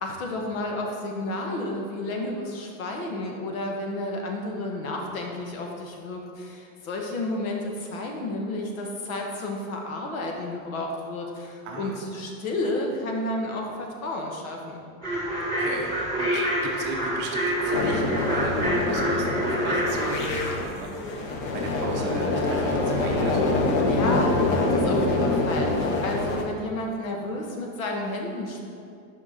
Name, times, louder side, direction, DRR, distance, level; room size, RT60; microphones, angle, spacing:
voice 1, 0.0-14.8 23.8-28.7, left 2 dB, 75° left, 1 dB, 1.5 m, -31 dB
sound 1, 15.0-20.1, equal, 10° left, 1.8 m, -27 dB
voice 2, 15.6-23.5, right 3 dB, 25° right, 0 dB, 0.7 m, -36 dB
sound 2, 17.7-26.4, left 2 dB, 30° left, 0.7 m, -25 dB
6.3 x 5.2 x 5.1 m, 2.4 s
supercardioid pair, 155°, 41 cm